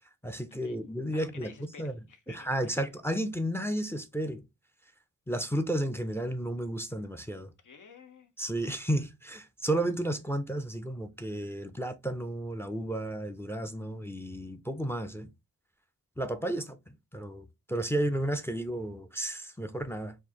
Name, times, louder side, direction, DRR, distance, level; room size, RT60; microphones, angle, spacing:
voice 1, 0.2-1.9 2.3-4.4 5.3-7.5 8.4-15.3 16.2-20.2, right 1 dB, 10° left, 0.4 m, -33 dB
voice 2, 1.1-2.9 7.6-8.3 16.6-16.7, left 5 dB, 70° left, 0.8 m, -52 dB
4.3 x 2.6 x 2.8 m
wide cardioid pair, 130°, 32 cm